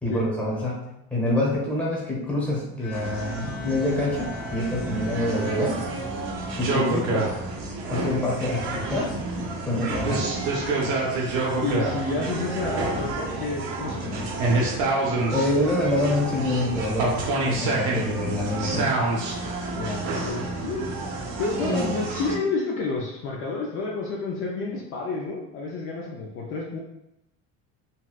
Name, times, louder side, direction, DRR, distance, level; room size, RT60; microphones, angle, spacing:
voice 1, 0.0-5.9 6.5-7.3 7.9-9.2 9.6-10.3 15.3-18.9 21.6-21.9, left 1 dB, 5° left, -5 dB, 0.8 m, -26 dB
Bowed string instrument, 2.8-6.5, left 6 dB, 80° left, 0.8 m, -42 dB
sound 1, 2.9-22.4, right 2 dB, 80° right, 0.9 m, -28 dB
voice 2, 11.6-14.4 19.7-20.9 21.4-26.8, left 3 dB, 40° left, -2 dB, 0.4 m, -30 dB
4.1 x 2.2 x 2.3 m, 0.87 s
cardioid pair, 160°, 32 cm